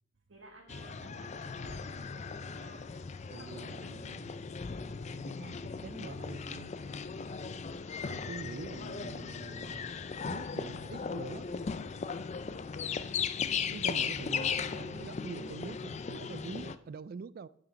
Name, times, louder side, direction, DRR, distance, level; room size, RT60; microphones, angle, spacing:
voice 1, 0.3-2.9 3.4-3.5 3.8-3.9, right 2 dB, 65° right, 1.4 m, -55 dB
sound 1, 0.7-16.8, left 6 dB, 35° left, 0.4 m, -37 dB
voice 2, 3.3-4.3 5.2-6.7 8.0-9.9 10.3-11.5 12.9-13.2 13.6-17.5, right 5 dB, 45° right, 0.3 m, -45 dB
9.9 x 5.9 x 5.2 m
head